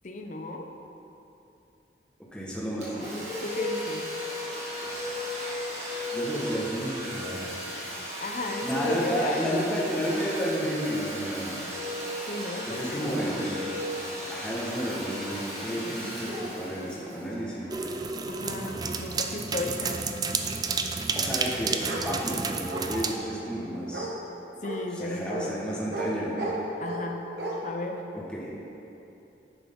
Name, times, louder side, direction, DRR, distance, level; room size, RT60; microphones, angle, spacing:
voice 1, 0.0-0.7 3.4-4.1 8.2-9.4 12.3-13.5 15.8-16.2 18.3-20.2 24.6-25.6 26.8-27.2 27.6-28.1, left 2 dB, 45° left, 4 dB, 0.7 m, -35 dB
voice 2, 2.3-3.1 6.1-7.5 8.6-11.6 12.6-13.7 14.3-18.0 21.1-24.1 24.9-26.4 28.1-28.5, equal, 5° left, -6 dB, 1.3 m, -32 dB
Domestic sounds home sounds, 2.8-18.3, equal, 40° right, 2.0 m, -35 dB
sound 1, 17.7-23.2, right 4 dB, 20° right, 0.3 m, -31 dB
Bark, 21.8-22.1 22.7-23.2 23.9-24.1 24.6-24.8 25.3-25.5 25.9-26.1 26.4-27.0 27.4-27.5, right 2 dB, 65° right, 1.3 m, -33 dB
10.5 x 6.3 x 3.7 m, 2.9 s
head